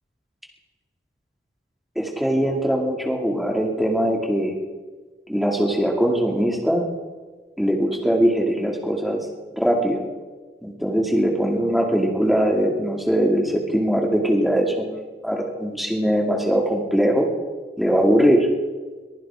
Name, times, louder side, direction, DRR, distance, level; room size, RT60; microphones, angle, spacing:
voice 1, 2.0-4.5 5.3-6.8 7.6-9.3 9.5-10.0 10.6-17.3 17.8-18.5, equal, ahead, -1 dB, 2.5 m, -21 dB
23.5 x 15.0 x 3.8 m, 1.3 s
head